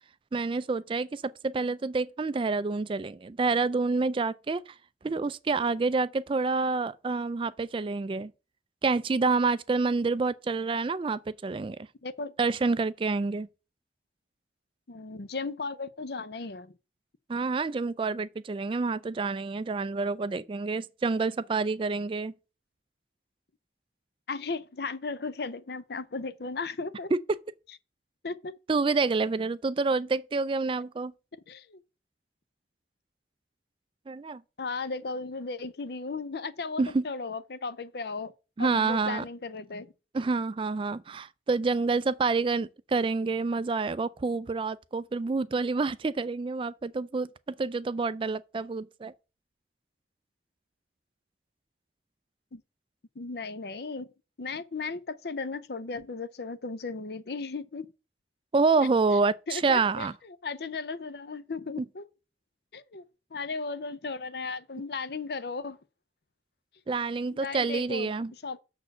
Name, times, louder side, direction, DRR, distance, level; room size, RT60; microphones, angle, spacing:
voice 1, 0.3-4.7 5.0-8.3 8.8-11.8 12.4-13.5 17.3-22.3 27.1-27.4 28.7-31.1 34.1-34.4 36.8-37.0 38.6-39.2 40.1-49.1 58.5-60.1 66.9-68.3, right 4 dB, 30° right, 0.3 m, -28 dB
voice 2, 12.0-12.3 14.9-16.7 24.3-27.1 28.2-28.5 31.5-31.8 34.6-38.3 38.6-39.9 52.5-52.6 53.2-54.1 54.4-57.9 59.5-62.1 62.7-63.0 63.3-65.8 67.3-68.1 68.4-68.6, left 4 dB, 60° left, 0.6 m, -36 dB
6.7 x 4.3 x 6.5 m
head